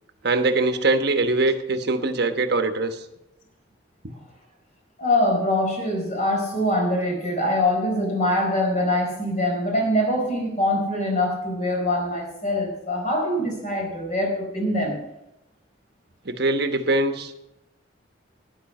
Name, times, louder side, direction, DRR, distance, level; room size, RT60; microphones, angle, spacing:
voice 1, 0.2-3.0 16.2-17.3, right 2 dB, 60° right, 7 dB, 1.2 m, -22 dB
voice 2, 5.0-15.0, left 1 dB, 40° left, 1 dB, 4.4 m, -23 dB
12.0 x 10.0 x 4.8 m, 0.87 s
head